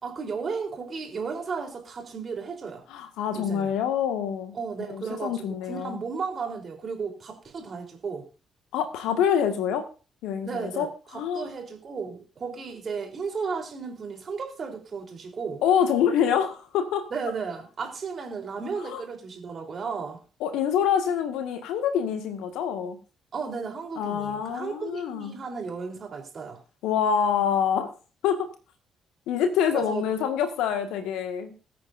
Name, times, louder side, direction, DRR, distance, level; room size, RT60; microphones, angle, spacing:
voice 1, 0.0-2.8 3.3-3.7 4.5-8.3 10.4-15.6 17.1-20.2 23.3-26.6 29.7-30.1, right 5 dB, 45° right, 2 dB, 3.7 m, -34 dB
voice 2, 2.9-6.0 8.7-9.8 10.2-10.9 11.1-11.5 15.6-17.0 18.8-19.0 20.4-23.0 24.0-25.4 26.8-27.9 28.2-28.5 29.3-31.5, left 8 dB, 70° left, 7 dB, 1.8 m, -26 dB
21.0 x 8.6 x 2.6 m, 0.35 s
figure-of-eight pair, 40°, 0 cm